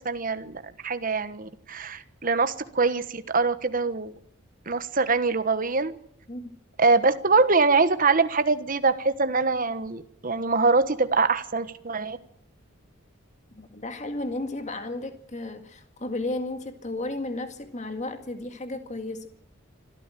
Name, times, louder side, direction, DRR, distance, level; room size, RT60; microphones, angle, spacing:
voice 1, 0.0-4.1 4.7-5.9 6.8-12.2, right 4 dB, 45° right, 11 dB, 1.3 m, -24 dB
voice 2, 13.6-19.3, left 2 dB, 35° left, 7 dB, 2.0 m, -33 dB
25.5 x 13.5 x 9.1 m, 0.70 s
head